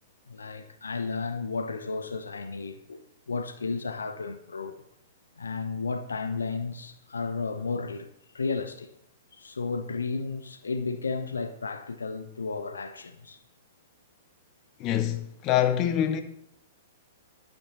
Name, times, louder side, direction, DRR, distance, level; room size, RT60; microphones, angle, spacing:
voice 1, 0.3-4.8 5.4-8.1 8.3-8.9 9.3-13.4, left 4 dB, 75° left, 0.8 m, -33 dB
voice 2, 14.8-16.2, left 10 dB, 35° left, 1.0 m, -25 dB
11.5 x 8.7 x 4.0 m
figure-of-eight pair, 110°, 0 cm